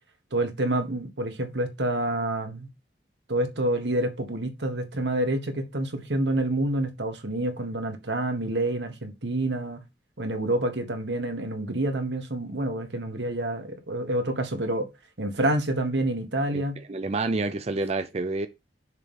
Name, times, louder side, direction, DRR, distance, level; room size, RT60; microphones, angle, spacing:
voice 1, 0.3-2.7 3.3-9.8 10.2-14.9 15.2-16.8, right 1 dB, 85° right, 1.6 m, -28 dB
voice 2, 16.5-18.5, right 3 dB, 35° right, 0.5 m, -29 dB
6.6 x 3.2 x 5.4 m
head